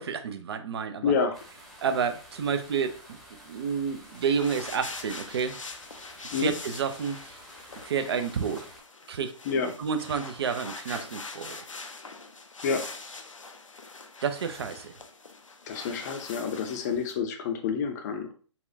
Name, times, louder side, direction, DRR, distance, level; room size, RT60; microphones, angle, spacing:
voice 1, 0.0-1.1 1.8-3.2 3.4-5.5 6.4-7.4 7.8-8.7 9.1-9.3 9.8-11.6 14.2-14.9, right 6 dB, 55° right, 9 dB, 0.5 m, -30 dB
voice 2, 1.0-1.4 6.3-6.5 9.5-9.7 12.6-12.8 15.7-18.3, left 6 dB, 35° left, 5 dB, 0.5 m, -28 dB
sound 1, 1.3-8.8, equal, ahead, 0.8 m, -50 dB
sound 2, 4.0-17.2, left 3 dB, 85° left, 0.5 m, -43 dB
4.1 x 2.3 x 2.6 m, 0.39 s
figure-of-eight pair, 130°, 16 cm